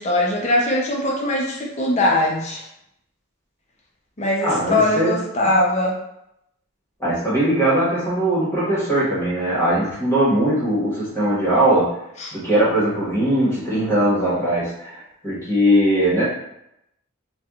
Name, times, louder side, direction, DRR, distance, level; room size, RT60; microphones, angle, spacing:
voice 1, 0.0-2.7 4.2-6.0 12.2-12.3, left 1 dB, 30° left, -2 dB, 0.6 m, -21 dB
voice 2, 4.4-5.2 7.0-12.0 12.3-16.2, right 1 dB, 10° left, -9 dB, 1.2 m, -20 dB
4.2 x 2.4 x 2.4 m, 0.80 s
head